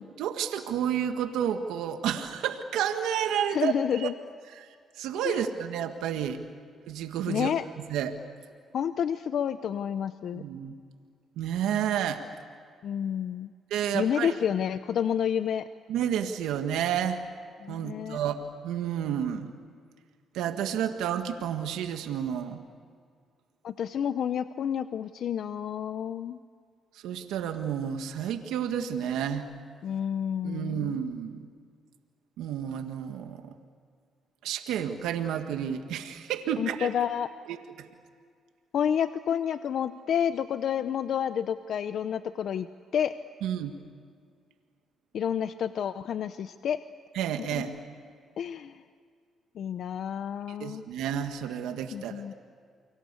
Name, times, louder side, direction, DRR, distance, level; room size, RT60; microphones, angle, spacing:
voice 1, 0.2-3.7 4.0-4.1 4.5-4.7 4.9-6.4 6.9-7.5 7.9-8.2 10.3-10.7 11.4-12.2 13.7-14.3 15.9-17.2 17.7-19.5 20.3-22.6 26.9-29.5 30.4-31.5 32.4-33.5 34.4-36.9 37.5-37.6 43.4-43.7 47.1-47.8 50.5-52.3, right 9 dB, 90° right, 6 dB, 1.7 m, -30 dB
voice 2, 3.5-4.1 5.2-5.4 7.3-7.6 8.7-10.4 12.8-13.5 13.9-15.7 17.6-18.2 23.6-26.4 29.8-31.0 36.6-37.3 38.7-42.7 42.9-43.1 45.1-46.8 48.4-48.8 49.6-50.8 51.9-52.3, left 8 dB, 65° left, 11 dB, 0.8 m, -29 dB
29.5 x 23.5 x 8.3 m, 2.1 s
cardioid pair, 90°, 0 cm